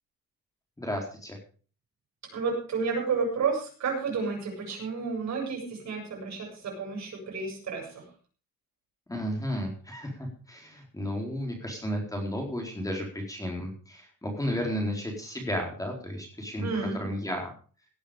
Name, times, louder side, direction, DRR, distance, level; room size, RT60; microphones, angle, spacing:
voice 1, 0.8-1.4 9.1-16.7 17.0-17.5, equal, 10° left, 1 dB, 4.1 m, -33 dB
voice 2, 2.3-8.1 16.6-17.0, right 5 dB, 55° right, 1 dB, 7.8 m, -31 dB
17.5 x 9.7 x 5.1 m, 0.40 s
cardioid pair, 130°, 33 cm